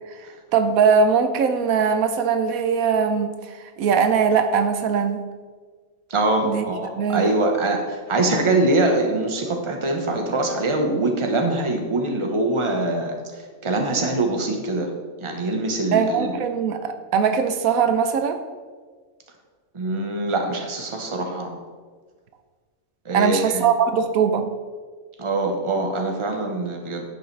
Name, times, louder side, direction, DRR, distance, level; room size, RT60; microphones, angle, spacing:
voice 1, 0.2-5.2 6.4-6.7 6.9-7.3 15.9-18.4 23.1-24.5, right 6 dB, 80° right, 8 dB, 1.1 m, -21 dB
voice 2, 6.1-13.1 13.6-14.9 15.2-16.3 19.7-21.6 23.0-23.6 25.2-27.0, right 2 dB, 25° right, 2 dB, 1.0 m, -23 dB
10.5 x 7.9 x 3.3 m, 1.5 s
omnidirectional pair, 1.5 m